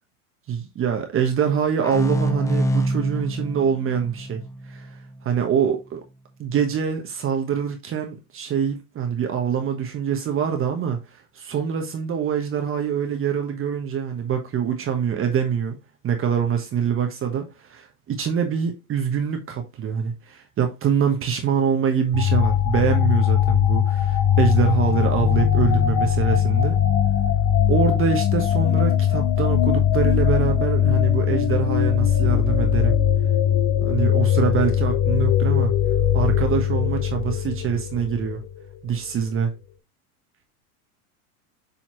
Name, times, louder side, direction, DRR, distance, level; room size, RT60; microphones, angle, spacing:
voice 1, 0.5-4.4 4.7-4.9 5.2-6.0 6.4-11.0 11.3-15.8 16.0-26.8 27.7-33.0 33.8-35.7 36.1-38.4 38.8-39.5, right 7 dB, 30° right, 1.3 m, -24 dB
sound 1, 1.8-5.3, right 1 dB, 5° left, 0.5 m, -26 dB
sound 2, 22.1-38.5, left 10 dB, 40° left, 1.4 m, -20 dB
7.5 x 4.2 x 3.1 m
hypercardioid pair, 100°, 45 cm